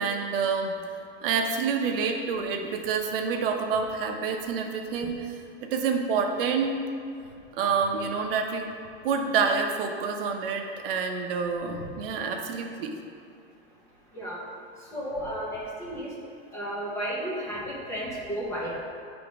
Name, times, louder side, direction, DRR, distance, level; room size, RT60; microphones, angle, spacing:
voice 1, 0.0-5.2 5.7-6.8 7.5-8.7 9.0-13.0, right 5 dB, 60° right, 3 dB, 0.7 m, -28 dB
voice 2, 14.9-16.1 16.5-18.8, equal, 10° left, -6 dB, 0.6 m, -33 dB
7.8 x 3.5 x 4.9 m, 2.4 s
supercardioid pair, 175°, 32 cm